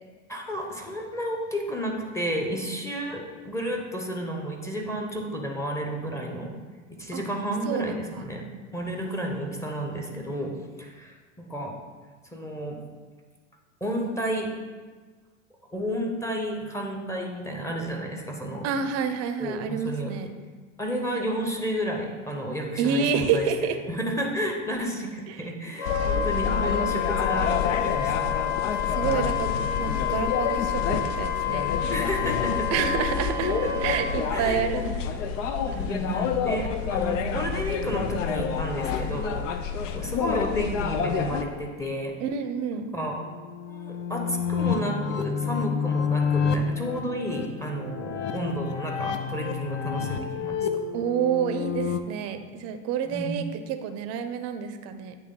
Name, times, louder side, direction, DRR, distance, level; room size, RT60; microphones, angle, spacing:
voice 1, 0.3-6.6 7.0-8.4 8.7-11.8 12.3-12.8 13.8-14.5 15.7-18.7 19.4-20.1 20.8-28.4 28.7-28.8 31.9-32.7 33.6-34.9 35.7-42.1 42.7-43.2 43.7-50.7 53.0-53.4, equal, 5° left, 1 dB, 0.8 m, -32 dB
voice 2, 7.7-8.2 18.6-20.3 22.8-23.8 25.3-25.4 28.9-29.5 29.8-31.6 32.7-33.5 33.8-35.0 42.2-42.8 50.9-55.2, right 7 dB, 40° right, 9 dB, 0.6 m, -28 dB
sound 1, 25.8-41.4, left 7 dB, 70° left, 0.6 m, -29 dB
Wind instrument woodwind instrument, 25.8-34.3, left 8 dB, 55° left, 1.3 m, -29 dB
sound 2, 43.2-52.0, left 6 dB, 30° left, 0.4 m, -29 dB
8.7 x 3.1 x 3.8 m, 1.4 s
hypercardioid pair, 90°, 39 cm